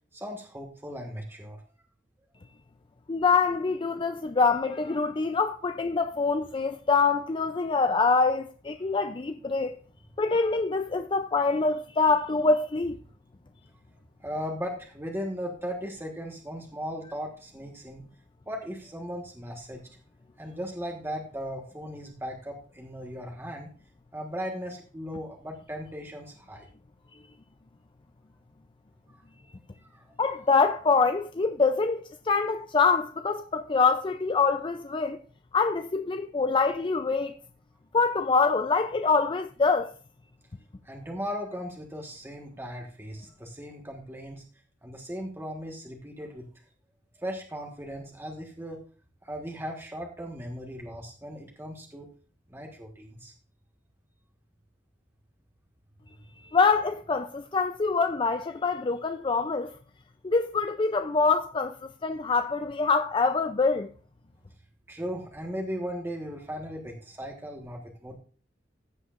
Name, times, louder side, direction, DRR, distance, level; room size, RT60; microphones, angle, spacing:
voice 1, 0.1-1.6 14.2-18.0 18.5-19.8 20.4-23.7 24.1-26.7 29.9-30.0 40.8-44.4 44.8-46.5 47.2-48.8 49.2-52.1 52.5-53.3 64.9-68.2, equal, 15° right, 1.4 m, -37 dB
voice 2, 3.1-9.8 10.2-13.0 30.2-35.2 35.5-37.3 37.9-39.9 56.4-59.7 60.2-61.8 62.0-63.9, left 4 dB, 25° left, 0.5 m, -25 dB
15.0 x 7.9 x 2.5 m
head